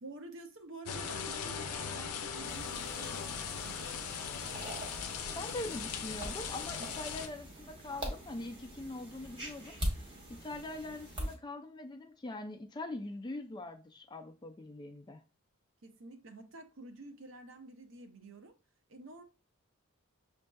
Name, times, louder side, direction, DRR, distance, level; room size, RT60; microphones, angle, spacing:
voice 1, 0.0-4.0 15.8-18.5 18.9-19.2, right 2 dB, 55° right, 0.6 m, -49 dB
sound 1, 0.9-7.3, left 6 dB, 85° left, 0.5 m, -39 dB
sound 2, 2.4-11.4, equal, 20° right, 0.8 m, -43 dB
voice 2, 5.3-15.2, left 2 dB, 20° left, 0.3 m, -43 dB
6.3 x 2.6 x 2.3 m
head